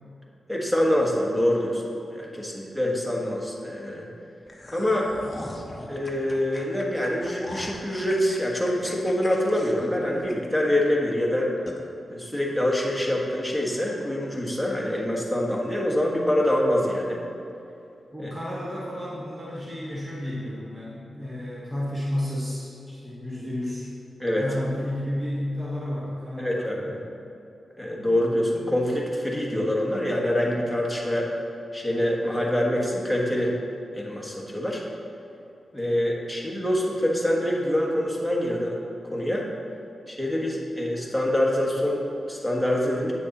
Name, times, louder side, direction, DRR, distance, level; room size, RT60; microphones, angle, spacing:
voice 1, 0.5-1.8 2.1-4.1 4.7-5.1 5.9-11.5 12.1-17.2 18.2-18.3 24.2-24.5 26.4-27.0 27.8-31.3 31.7-33.5 33.9-34.8 35.7-38.8 39.1-39.5 40.1-43.1, left 1 dB, ahead, -2 dB, 1.4 m, -25 dB
sound 1, 4.5-10.7 11.1-11.2 11.7-11.8, left 1 dB, 20° left, 0.9 m, -41 dB
voice 2, 18.1-23.8 24.4-26.9, left 1 dB, 20° right, -7 dB, 1.5 m, -32 dB
8.9 x 6.5 x 4.1 m, 2.7 s
wide cardioid pair, 115°, 0 cm